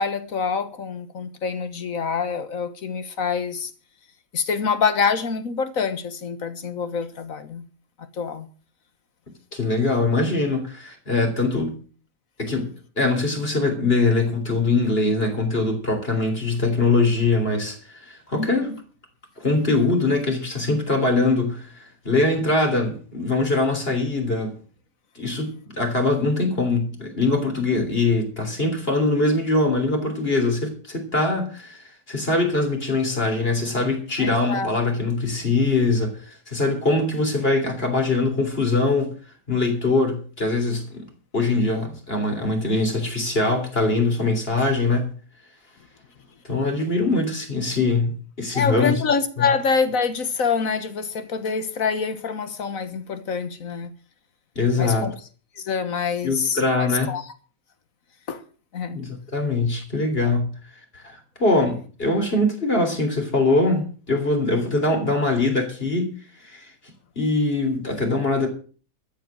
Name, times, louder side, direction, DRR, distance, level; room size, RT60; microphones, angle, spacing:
voice 1, 0.0-3.7 4.3-7.6 8.1-8.5 18.3-18.8 34.2-34.7 48.5-53.9 54.8-55.1 55.6-57.3 58.3-58.4 58.7-59.0, left 5 dB, 55° left, 1.6 m, -26 dB
voice 2, 9.5-11.8 12.4-12.7 13.0-18.7 19.4-21.7 22.1-24.5 25.2-39.1 39.5-41.1 41.3-45.1 46.4-49.0 54.6-55.1 56.2-57.1 58.9-60.5 61.0-66.1 66.5-66.7 67.2-68.5, left 2 dB, 35° left, 3.6 m, -22 dB
13.0 x 7.9 x 7.5 m
omnidirectional pair, 1.8 m